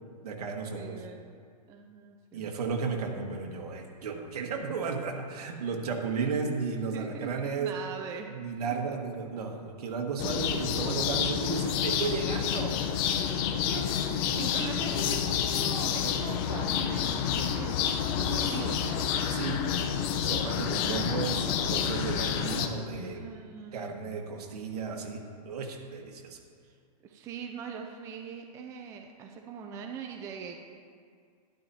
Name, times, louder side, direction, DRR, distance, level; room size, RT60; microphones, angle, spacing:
voice 1, 0.2-1.0 2.3-7.7 8.3-12.9 19.3-19.7 20.2-23.2 23.7-26.4, right 5 dB, 70° right, 2 dB, 1.6 m, -34 dB
voice 2, 0.7-1.4 1.7-2.5 5.6-5.7 6.9-8.3 8.6-8.7 12.6-17.9 18.2-19.0 20.8-21.2 23.1-23.9 27.0-30.6, right 6 dB, 15° right, 3 dB, 0.4 m, -42 dB
sound 1, 10.2-22.7, left 8 dB, 35° left, 0.6 m, -29 dB
12.0 x 11.0 x 2.8 m, 2.1 s
hypercardioid pair, 145°, 21 cm